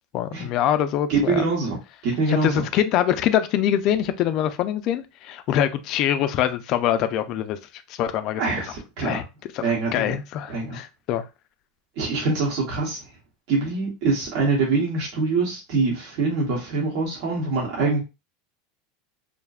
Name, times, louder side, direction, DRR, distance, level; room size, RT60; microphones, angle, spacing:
voice 1, 0.1-1.5 2.3-8.4 9.0-9.2 9.5-9.6 9.9-11.2, left 10 dB, 45° left, 0.3 m, -24 dB
voice 2, 1.1-1.8 2.0-2.7 8.4-9.2 9.6-10.2 10.5-10.8 12.0-13.0 13.5-18.0, right 3 dB, 60° right, 0.9 m, -24 dB
2.5 x 2.1 x 2.3 m
supercardioid pair, 140°, 0 cm